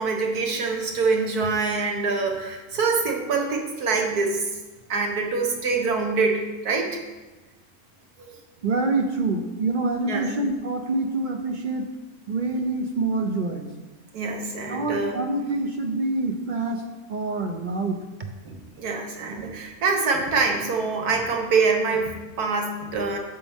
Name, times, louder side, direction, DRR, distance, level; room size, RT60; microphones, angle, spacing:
voice 1, 0.0-4.5 4.9-7.0 8.2-8.4 10.1-10.3 14.1-15.2 18.5-23.2, right 4 dB, 85° right, 2 dB, 1.7 m, -25 dB
voice 2, 8.6-11.9 12.3-13.7 14.7-16.8 17.1-18.0, right 2 dB, 45° right, 5 dB, 0.6 m, -26 dB
10.0 x 7.4 x 3.6 m, 1.2 s
omnidirectional pair, 1.6 m